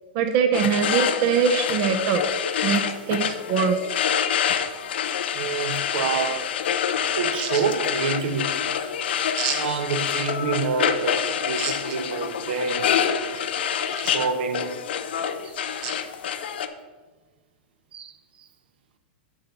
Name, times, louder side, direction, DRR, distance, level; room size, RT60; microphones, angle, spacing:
voice 1, 0.1-2.2 2.6-2.8 3.1-4.0 7.4-7.5 9.4-9.6 11.6-11.7 14.0-14.2 15.8-15.9, right 6 dB, 40° right, 0.6 m, -23 dB
sound 1, 0.5-16.7, left 8 dB, 80° left, 0.6 m, -26 dB
voice 2, 5.3-6.5 7.2-8.6 9.5-12.9 14.1-14.9 15.4-15.5 17.9-18.1, right 5 dB, 75° right, 0.9 m, -27 dB
8.6 x 4.1 x 6.7 m
supercardioid pair, 160°, 6 cm